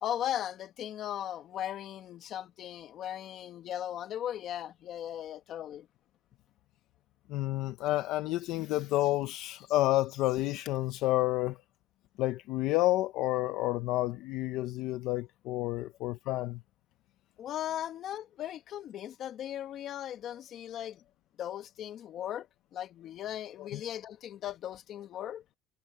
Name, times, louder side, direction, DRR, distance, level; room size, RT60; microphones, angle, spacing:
voice 1, 0.0-5.9 15.7-15.8 17.4-21.0 21.4-22.5 22.7-25.4, left 11 dB, 50° left, 1.7 m, -37 dB
voice 2, 7.3-11.6 12.2-16.6 23.6-23.8, left 16 dB, 70° left, 0.9 m, -30 dB
cardioid pair, 125°, 0 cm